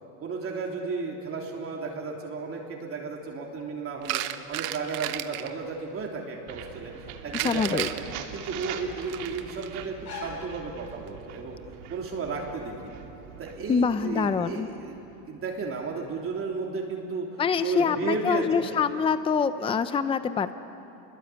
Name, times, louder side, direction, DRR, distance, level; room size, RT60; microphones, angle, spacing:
voice 1, 0.2-4.2 4.5-6.9 7.2-8.0 8.3-11.6 11.9-13.0 13.4-15.0 15.3-17.3 17.6-18.8, right 4 dB, 30° right, -1 dB, 3.2 m, -33 dB
sound 1, 4.0-5.5 7.3-9.7 10.9-11.1, right 15 dB, 90° right, 1.3 m, -33 dB
sound 2, 4.5-11.4, left 4 dB, 45° left, 6.3 m, -48 dB
sound 3, 6.5-16.3, right 9 dB, 70° right, 2.6 m, -43 dB
voice 2, 7.3-7.9 13.7-14.7 17.4-20.5, left 6 dB, 15° left, 11 dB, 0.6 m, -25 dB
29.5 x 22.0 x 8.5 m, 3.0 s
cardioid pair, 145°, 41 cm